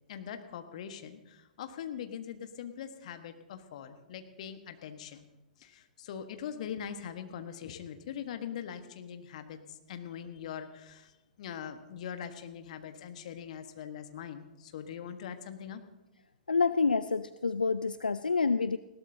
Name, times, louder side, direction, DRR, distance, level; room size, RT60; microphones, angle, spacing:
voice 1, 0.1-5.3 5.6-11.1 11.4-15.8, left 8 dB, 50° left, 8 dB, 1.5 m, -42 dB
voice 2, 16.5-18.8, left 4 dB, 80° left, 14 dB, 0.4 m, -28 dB
20.0 x 17.0 x 2.8 m, 0.99 s
figure-of-eight pair, 110°, 5 cm